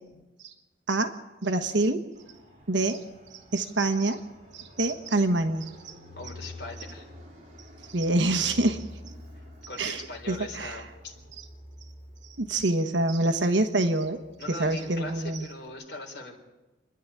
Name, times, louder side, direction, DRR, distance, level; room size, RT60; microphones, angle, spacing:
voice 1, 1.4-2.0 2.7-3.0 3.5-4.2 4.5-5.9 7.9-8.8 9.8-10.0 10.3-10.8 12.4-14.2 14.5-15.4, right 2 dB, 75° right, 8 dB, 1.3 m, -26 dB
Fixed-wing aircraft airplane, 2.1-15.7, left 1 dB, 40° right, 3.9 m, -49 dB
voice 2, 6.2-7.1 9.7-11.1 14.4-16.4, left 2 dB, 60° left, 1 dB, 3.9 m, -40 dB
27.0 x 10.5 x 9.8 m, 1.1 s
head